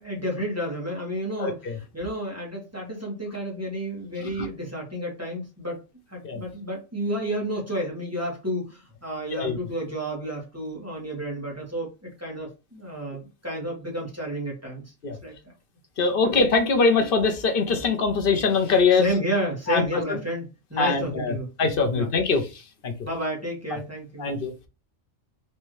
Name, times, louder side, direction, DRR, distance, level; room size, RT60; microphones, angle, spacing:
voice 1, 0.0-5.8 6.1-14.9 15.2-15.4 16.2-16.3 18.9-21.5 21.9-22.1 23.0-24.3, equal, 10° right, -2 dB, 1.3 m, -31 dB
voice 2, 1.4-1.8 4.4-4.5 6.2-6.4 9.4-9.5 15.0-15.1 16.0-19.1 19.7-20.2 20.8-21.3 21.6-22.4 22.8-22.9 24.2-24.5, left 4 dB, 55° left, 6 dB, 0.8 m, -22 dB
4.4 x 2.8 x 3.1 m, 0.29 s
omnidirectional pair, 1.3 m